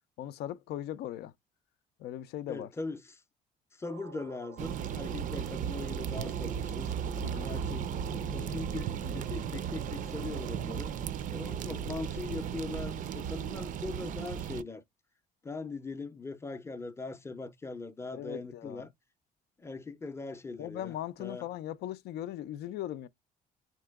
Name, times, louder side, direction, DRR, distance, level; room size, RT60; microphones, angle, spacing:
voice 1, 0.2-1.3 2.0-2.7 7.2-7.5 18.1-18.9 20.6-23.1, left 12 dB, 75° left, 0.4 m, -39 dB
voice 2, 2.5-3.2 3.8-6.9 7.4-10.9 11.3-14.8 15.4-18.9 19.6-21.5, left 3 dB, 15° left, 0.5 m, -41 dB
sound 1, 3.8-11.1, right 10 dB, 90° right, 0.7 m, -50 dB
sound 2, 4.6-14.6, right 8 dB, 50° right, 0.4 m, -35 dB
3.7 x 2.9 x 3.4 m
cardioid pair, 110°, 17 cm